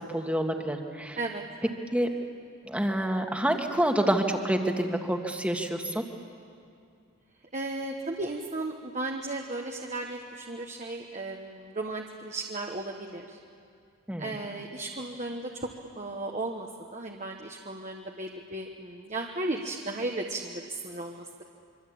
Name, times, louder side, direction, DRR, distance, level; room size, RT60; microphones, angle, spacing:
voice 1, 0.1-1.2 1.9-2.1 2.6-6.0 14.1-14.4, right 1 dB, 5° right, 3 dB, 1.7 m, -27 dB
voice 2, 1.2-1.7 7.5-13.4 14.2-15.7 15.9-21.4, right 2 dB, 35° right, 1 dB, 1.3 m, -35 dB
25.0 x 24.5 x 8.7 m, 2.4 s
head